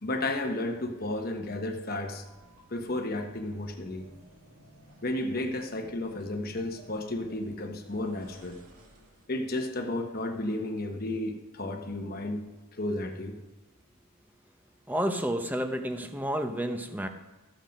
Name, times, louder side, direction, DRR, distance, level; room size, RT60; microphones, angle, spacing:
voice 1, 0.0-2.2 2.7-4.0 5.0-8.6 9.3-12.4 12.7-13.4, left 1 dB, 45° left, 4 dB, 1.0 m, -33 dB
sound 1, 1.9-9.4, right 1 dB, 80° right, 2.1 m, -55 dB
voice 2, 14.9-17.1, equal, 10° right, 6 dB, 0.8 m, -30 dB
13.5 x 7.8 x 5.3 m, 1.2 s
head